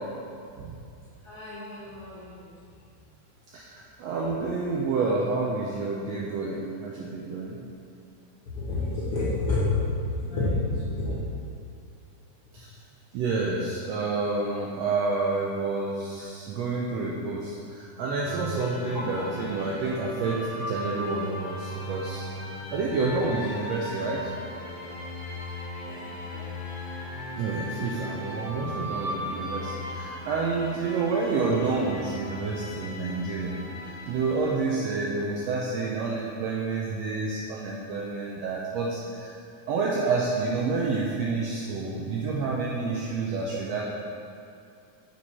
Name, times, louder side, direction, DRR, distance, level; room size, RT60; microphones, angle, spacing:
voice 1, 1.2-2.5 8.6-11.2 19.1-19.2 25.9-26.6 43.0-43.1, left 2 dB, 90° left, -9 dB, 0.9 m, -29 dB
voice 2, 3.5-7.6 12.5-12.7 13.1-22.3 22.7-24.2 27.4-33.6 33.8-39.3 39.7-43.8, right 3 dB, 80° right, -3 dB, 1.5 m, -29 dB
sound 1, 18.2-34.6, left 1 dB, 55° left, 1.0 m, -37 dB
7.1 x 4.5 x 4.2 m, 2.5 s
omnidirectional pair, 3.5 m